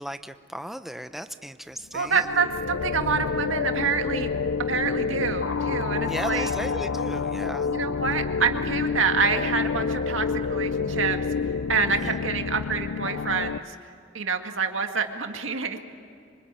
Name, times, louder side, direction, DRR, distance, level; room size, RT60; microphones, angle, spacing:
voice 1, 0.0-2.3 6.0-7.7 11.9-12.2, equal, ahead, 10 dB, 0.7 m, -36 dB
voice 2, 1.9-4.3 4.7-6.5 7.7-11.2 11.7-13.7 14.1-15.8, right 5 dB, 85° right, 5 dB, 2.0 m, -27 dB
sound 1, 2.0-13.6, left 5 dB, 75° left, 0.6 m, -28 dB
25.0 x 25.0 x 9.0 m, 2.4 s
head